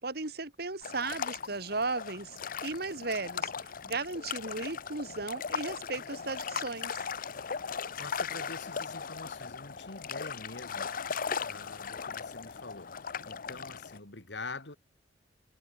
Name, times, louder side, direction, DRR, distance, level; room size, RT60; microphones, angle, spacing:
voice 1, 0.0-7.0, right 3 dB, 60° right, 3.1 m, -36 dB
sound 1, 0.8-14.0, left 6 dB, 50° left, 0.8 m, -38 dB
voice 2, 8.0-10.9 11.4-14.8, left 3 dB, 75° left, 3.1 m, -45 dB
head